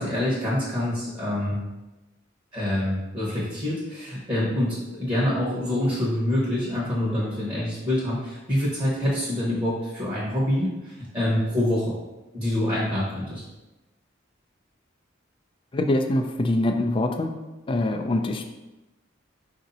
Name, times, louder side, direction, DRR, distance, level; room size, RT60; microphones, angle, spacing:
voice 1, 0.0-1.7 2.5-11.9 12.3-13.4, left 1 dB, 25° right, -7 dB, 1.1 m, -26 dB
voice 2, 15.7-17.4 17.7-18.5, left 1 dB, 25° left, 5 dB, 0.4 m, -24 dB
4.9 x 2.7 x 4.0 m, 1.0 s
head